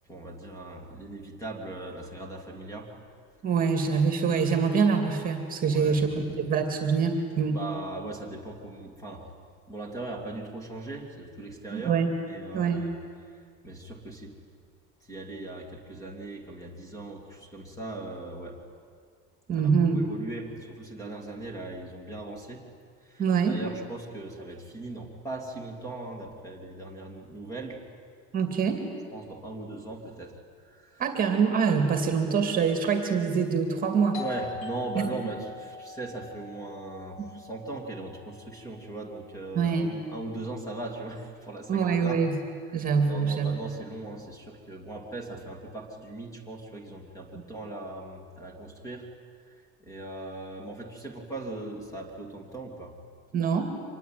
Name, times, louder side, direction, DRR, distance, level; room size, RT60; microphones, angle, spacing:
voice 1, 0.1-2.9 5.6-6.0 7.5-9.3 9.7-12.0 12.2-12.9 13.3-14.3 15.0-18.6 19.5-22.6 23.0-27.8 29.1-30.4 30.6-31.0 34.2-42.2 42.7-49.1 49.4-53.0, right 2 dB, 10° left, 3 dB, 2.7 m, -39 dB
voice 2, 3.4-6.1 6.4-7.6 11.7-12.1 12.5-12.9 19.5-20.0 23.2-23.6 28.3-28.8 31.0-34.2 35.0-35.1 39.6-39.9 41.7-42.3 42.7-43.5 53.3-53.7, right 5 dB, 30° right, 5 dB, 2.3 m, -25 dB
Doorbell, 34.1-39.5, left 3 dB, 60° left, 4.0 m, -43 dB
25.0 x 20.5 x 9.3 m, 2.1 s
cardioid pair, 165°, 30 cm